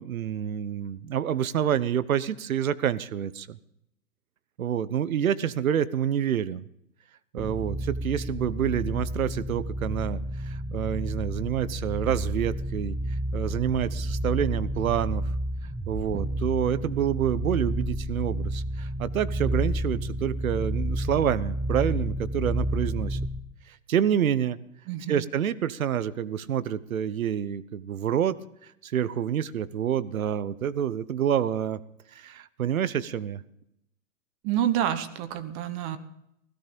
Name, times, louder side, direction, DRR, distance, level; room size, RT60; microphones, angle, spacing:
voice 1, 0.0-3.6 4.6-6.7 7.3-13.0 13.3-15.2 15.9-23.2 23.7-24.6 25.1-28.4 28.6-31.8 32.1-33.4, right 9 dB, 80° right, 17 dB, 1.1 m, -28 dB
sound 1, 7.4-23.5, right 1 dB, 5° right, 0.7 m, -30 dB
voice 2, 24.9-25.3 34.4-36.0, right 11 dB, 30° right, 12 dB, 1.2 m, -28 dB
17.0 x 15.0 x 5.3 m, 0.79 s
hypercardioid pair, 140°, 41 cm